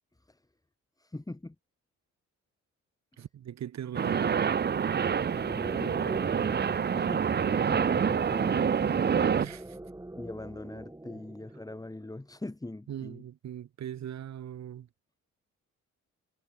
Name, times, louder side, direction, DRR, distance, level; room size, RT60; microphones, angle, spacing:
voice 1, 1.0-1.6 5.5-6.7 7.0-9.4 10.2-13.2, left 2 dB, 10° left, 4.0 m, -42 dB
voice 2, 3.2-4.5 9.4-9.8 12.9-14.9, right 10 dB, 65° right, 2.9 m, -40 dB
sound 1, 3.9-9.5, right 7 dB, 35° right, 0.8 m, -27 dB
sound 2, 4.8-12.2, right 1 dB, 10° right, 5.2 m, -44 dB
cardioid pair, 90°, 30 cm